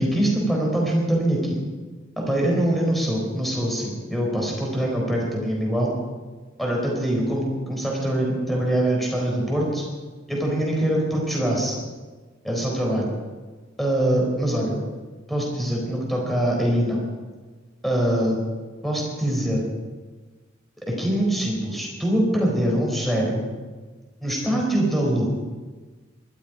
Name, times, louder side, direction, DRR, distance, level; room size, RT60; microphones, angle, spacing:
voice 1, 0.0-1.6 2.2-5.9 6.6-9.8 10.3-11.8 12.4-13.1 13.8-14.8 15.3-17.0 17.8-18.4 18.8-19.6 20.9-23.4 24.2-25.3, right 1 dB, ahead, -2 dB, 4.3 m, -23 dB
20.0 x 13.0 x 5.1 m, 1.4 s
head